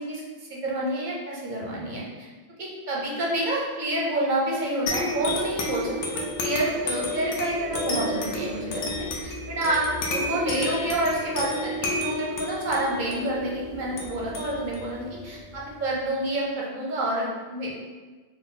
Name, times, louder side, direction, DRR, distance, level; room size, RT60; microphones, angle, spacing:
voice 1, 0.0-2.0 2.6-17.8, right 1 dB, 45° right, -4 dB, 0.7 m, -28 dB
sound 1, 4.9-15.9, left 1 dB, 65° left, 0.9 m, -31 dB
3.8 x 2.3 x 3.8 m, 1.4 s
omnidirectional pair, 1.4 m